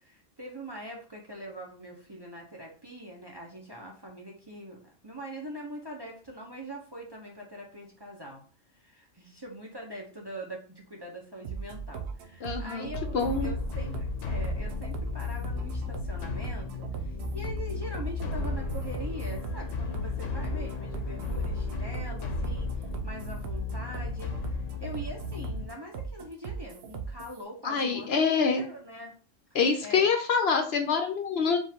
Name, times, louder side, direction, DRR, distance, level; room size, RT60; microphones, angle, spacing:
voice 1, 0.0-8.4 8.7-13.1 13.4-29.1 29.8-30.1, right 1 dB, 25° right, -2 dB, 0.8 m, -43 dB
sound 1, 11.4-27.4, right 6 dB, 65° right, 0.9 m, -38 dB
voice 2, 12.4-12.9 13.1-13.5 27.6-28.6 29.5-31.6, left 5 dB, 60° left, 5 dB, 0.8 m, -25 dB
sound 2, 12.9-25.7, left 5 dB, 90° left, 1.0 m, -35 dB
5.1 x 2.5 x 3.5 m, 0.39 s
omnidirectional pair, 1.3 m